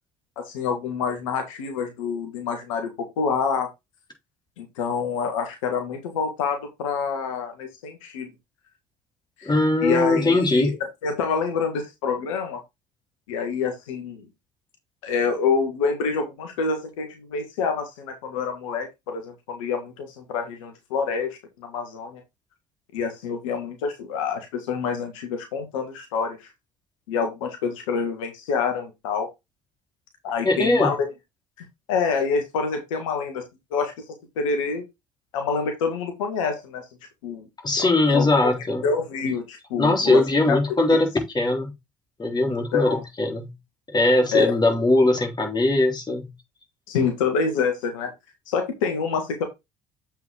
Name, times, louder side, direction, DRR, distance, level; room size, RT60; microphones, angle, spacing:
voice 1, 0.4-3.7 4.6-8.3 9.4-9.5 9.8-10.8 11.0-12.6 13.3-14.3 15.0-22.2 22.9-26.5 27.1-29.3 30.2-31.1 31.9-33.4 33.7-33.9 34.4-34.8 35.3-36.8 37.2-37.5 37.8-38.3 38.8-40.2 40.5-40.6 42.5-43.0 44.3-44.5 46.9-48.1 48.5-49.5, left 5 dB, 85° left, 1.9 m, -27 dB
voice 2, 9.5-10.7 30.4-30.9 37.6-38.9 39.8-41.7 42.2-43.5 43.9-46.3, left 2 dB, 25° left, 3.7 m, -20 dB
7.8 x 5.6 x 3.7 m
hypercardioid pair, 65°, 16 cm